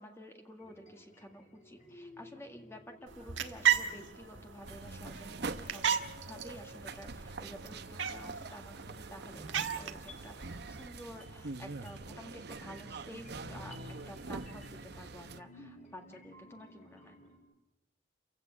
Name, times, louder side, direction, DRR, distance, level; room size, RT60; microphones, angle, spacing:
voice 1, 0.0-5.8 6.2-13.8 14.1-17.2, equal, 15° left, 3 dB, 1.9 m, -51 dB
sound 1, 0.6-17.4, left 2 dB, 40° left, 6.2 m, -56 dB
sound 2, 3.1-10.9, right 9 dB, 90° right, 1.4 m, -36 dB
sound 3, 4.6-15.4, right 3 dB, 60° right, 0.9 m, -45 dB
29.0 x 16.0 x 7.4 m, 0.98 s
head